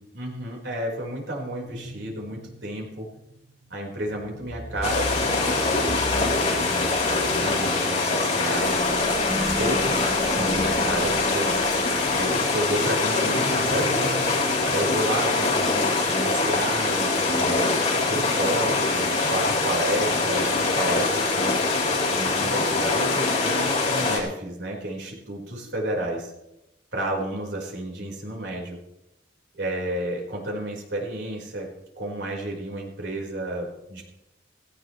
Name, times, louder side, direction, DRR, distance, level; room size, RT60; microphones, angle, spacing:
voice 1, 0.1-3.1 3.7-8.8 9.6-11.8 12.1-14.2 14.7-17.7 18.0-21.6 22.1-26.3 26.9-28.8 29.5-31.7 32.0-34.0, right 1 dB, 70° right, -1 dB, 4.8 m, -31 dB
sound 1, 1.7-16.9 17.3-17.4, left 1 dB, 10° right, 4.9 m, -37 dB
sound 2, 4.8-24.2, left 3 dB, 35° left, 3.7 m, -23 dB
17.5 x 16.0 x 3.3 m, 0.88 s
head